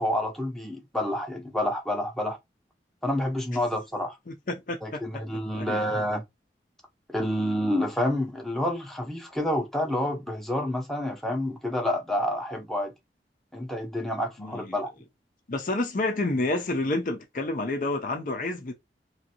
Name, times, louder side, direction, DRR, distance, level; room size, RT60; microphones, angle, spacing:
voice 1, 0.0-2.4 3.0-4.2 4.8-6.2 7.1-12.9 13.5-14.9, left 1 dB, ahead, 0.7 m, -28 dB
voice 2, 4.3-5.8 14.4-14.8 15.5-18.7, left 2 dB, 45° left, 0.5 m, -29 dB
3.1 x 2.6 x 2.8 m
head